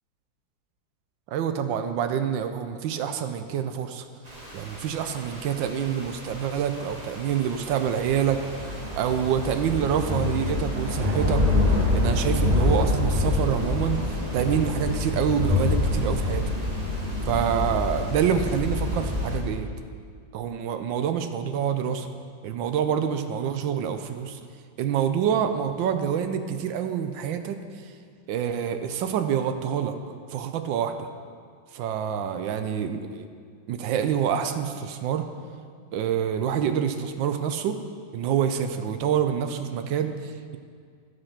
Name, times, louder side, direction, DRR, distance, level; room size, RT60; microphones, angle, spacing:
voice 1, 1.3-4.1 4.5-8.4 9.0-16.4 17.3-19.7 20.3-22.1 22.4-24.4 24.8-27.6 28.3-30.0 30.3-31.1 31.7-33.3 33.7-35.2 35.9-37.8 38.1-40.6, right 8 dB, 75° right, 8 dB, 1.3 m, -27 dB
sound 1, 4.3-19.4, left 2 dB, 20° right, 1.6 m, -27 dB
14.0 x 5.3 x 5.8 m, 2.1 s
omnidirectional pair, 2.1 m